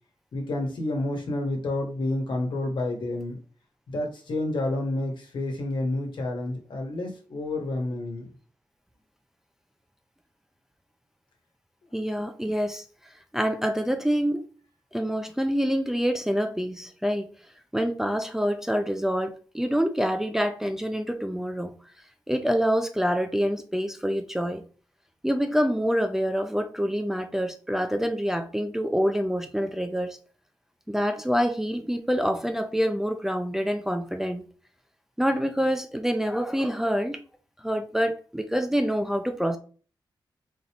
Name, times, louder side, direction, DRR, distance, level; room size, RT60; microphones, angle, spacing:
voice 1, 0.3-3.4 3.9-8.2, left 2 dB, 75° left, 1.3 m, -29 dB
voice 2, 11.9-14.5 14.9-17.3 17.7-21.7 22.3-24.6 25.2-30.2 30.9-34.4 35.2-37.2 37.6-39.6, equal, 5° right, 0.5 m, -26 dB
4.1 x 3.4 x 2.9 m
wide cardioid pair, 110°, 8 cm